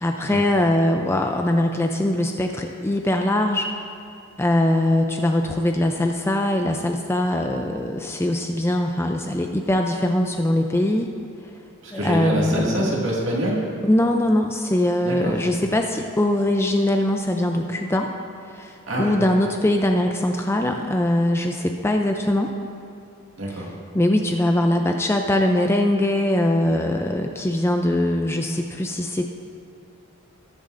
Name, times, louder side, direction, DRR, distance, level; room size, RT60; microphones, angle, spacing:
voice 1, 0.0-3.7 4.4-11.1 11.9-12.8 13.8-18.1 18.5-22.5 23.9-29.2, left 1 dB, 10° left, 3 dB, 0.3 m, -22 dB
voice 2, 11.8-13.6 15.0-15.4 18.9-19.1 23.4-23.7, right 1 dB, 55° right, -4 dB, 2.1 m, -25 dB
21.0 x 7.1 x 2.6 m, 2.7 s
head